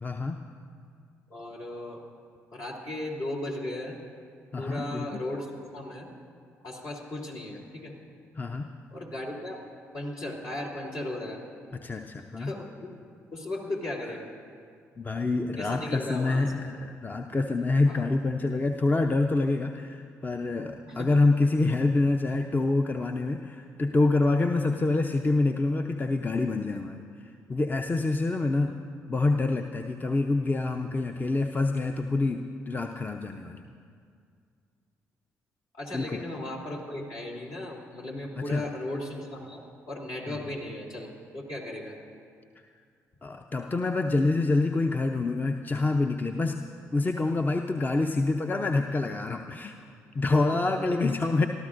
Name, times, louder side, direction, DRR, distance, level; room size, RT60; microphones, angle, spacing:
voice 1, 0.0-0.4 4.5-5.2 8.4-8.7 11.8-12.5 15.0-27.1 27.5-28.8 29.1-33.7 35.9-36.2 38.5-38.7 40.3-40.4 43.2-49.7 50.1-51.5, left 3 dB, 25° left, 5 dB, 0.7 m, -26 dB
voice 2, 1.3-2.0 2.5-4.0 4.6-6.1 6.6-7.9 8.9-9.6 9.9-11.4 12.4-14.3 15.6-16.5 17.9-18.0 20.9-21.2 35.8-39.6 39.9-42.0 50.5-50.6, left 1 dB, 65° left, -3 dB, 3.1 m, -36 dB
30.0 x 13.5 x 2.6 m, 2.2 s
hypercardioid pair, 45°, 7 cm